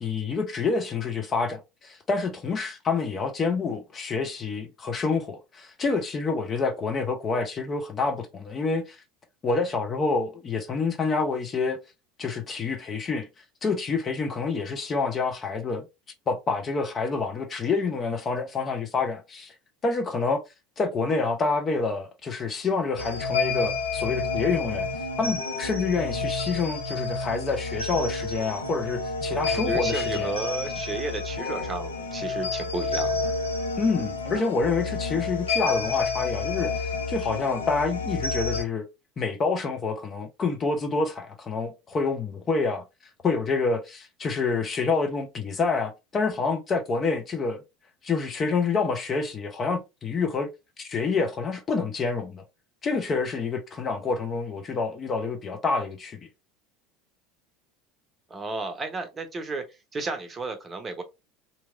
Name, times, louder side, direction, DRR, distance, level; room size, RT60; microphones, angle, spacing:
voice 1, 0.0-9.0 9.4-11.8 12.2-13.3 13.6-15.9 16.3-19.5 19.8-20.4 20.8-24.9 25.2-30.4 33.8-38.8 39.2-42.8 43.2-47.6 48.0-50.5 50.8-52.4 52.8-56.2, left 4 dB, 30° left, 0.7 m, -27 dB
sound 1, 23.0-38.6, left 4 dB, 75° left, 0.5 m, -29 dB
voice 2, 29.3-33.3 58.3-59.6 59.9-61.0, right 3 dB, 25° right, 0.8 m, -33 dB
2.9 x 2.7 x 2.4 m
figure-of-eight pair, 70°, 0 cm